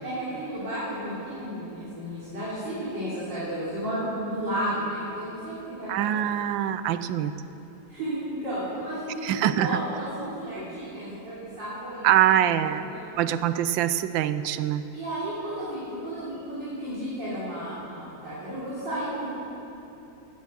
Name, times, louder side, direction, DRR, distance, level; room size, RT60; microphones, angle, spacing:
voice 1, 0.0-6.3 7.9-12.1 12.5-13.1 14.9-19.3, right 1 dB, 70° right, -11 dB, 3.8 m, -33 dB
voice 2, 5.9-7.3 9.2-9.7 12.0-12.9 13.2-14.8, right 11 dB, 90° right, 12 dB, 1.3 m, -24 dB
16.5 x 10.5 x 6.3 m, 2.9 s
omnidirectional pair, 2.0 m